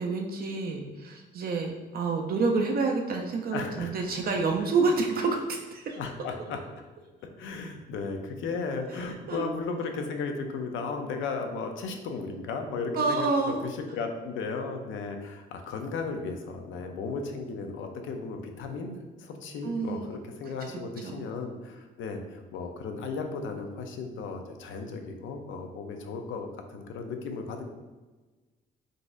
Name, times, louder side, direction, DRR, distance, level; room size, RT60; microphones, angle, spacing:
voice 1, 0.0-6.0 9.3-9.5 12.9-13.7 19.6-20.1 21.0-21.2, right 4 dB, 50° right, 1 dB, 0.4 m, -28 dB
voice 2, 3.5-3.9 6.0-6.6 7.4-13.3 13.6-27.6, left 4 dB, 75° left, 5 dB, 0.5 m, -35 dB
3.9 x 2.5 x 2.4 m, 1.2 s
cardioid pair, 90°, 20 cm